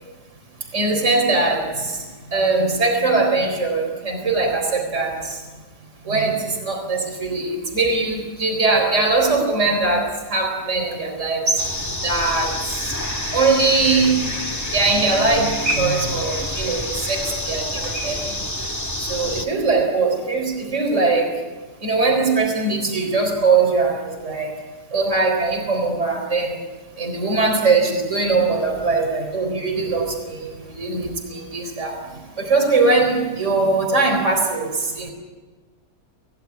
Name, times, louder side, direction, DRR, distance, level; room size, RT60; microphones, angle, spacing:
voice 1, 0.7-2.0 2.3-5.4 6.1-11.6 12.0-12.5 13.3-14.2 14.7-16.8 17.1-18.2 19.0-21.3 21.8-24.5 24.9-26.6 27.0-30.5 30.8-32.0 32.4-35.1, right 3 dB, 50° right, 3 dB, 4.5 m, -21 dB
sound 1, 11.6-19.5, left 1 dB, 10° left, 1.9 m, -27 dB
28.0 x 16.0 x 9.6 m, 1.3 s
omnidirectional pair, 1.6 m